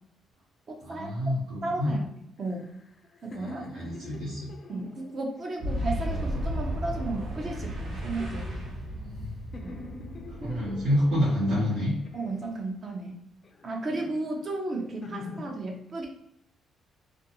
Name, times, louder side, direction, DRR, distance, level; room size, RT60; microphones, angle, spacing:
voice 1, 0.8-2.0 3.3-4.5 8.9-9.3 9.6-9.7 10.4-11.9, equal, 90° right, -9 dB, 1.0 m, -28 dB
voice 2, 1.6-2.1 2.4-2.7 3.2-3.6 4.7-8.6 9.6-9.7 10.4-10.7 12.1-13.2 13.6-16.1, right 2 dB, 45° right, 1 dB, 0.5 m, -34 dB
sound 1, 2.4-6.7 7.3-9.2 9.5-12.9 13.4-15.5, left 3 dB, 45° left, 0.4 m, -47 dB
Boom, 5.6-12.1, equal, 70° right, 0.9 m, -34 dB
2.5 x 2.3 x 2.8 m, 0.80 s
cardioid pair, 90°, 0 cm